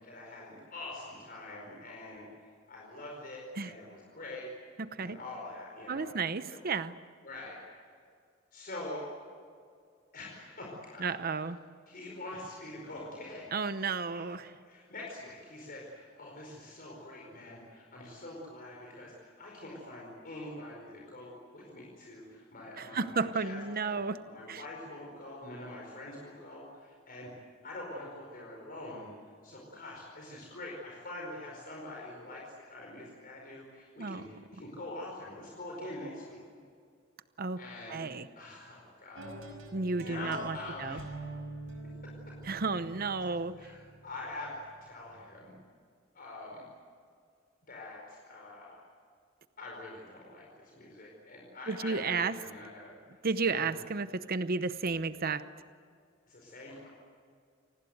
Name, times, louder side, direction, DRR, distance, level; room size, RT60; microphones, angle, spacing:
voice 1, 0.0-4.5 5.0-6.2 6.5-6.6 7.2-7.6 8.5-9.1 10.1-11.2 11.9-13.5 14.1-14.2 14.6-27.3 27.6-36.4 37.6-38.0 38.4-39.3 40.0-41.1 42.0-42.3 43.3-45.5 46.1-46.6 47.6-48.8 49.6-52.9 53.5-53.7 56.3-56.9, left 2 dB, 50° left, -2 dB, 4.9 m, -45 dB
voice 2, 4.8-5.2 5.9-6.9 11.0-11.6 13.5-14.5 22.8-24.2 24.5-24.6 34.0-34.2 37.4-37.6 37.9-38.3 39.7-41.0 42.4-43.5 51.7-52.4 53.2-55.4, right 4 dB, 50° right, 12 dB, 0.8 m, -32 dB
sound 1, 39.1-45.2, right 2 dB, 80° right, 5.7 m, -46 dB
28.5 x 20.0 x 8.0 m, 2.2 s
head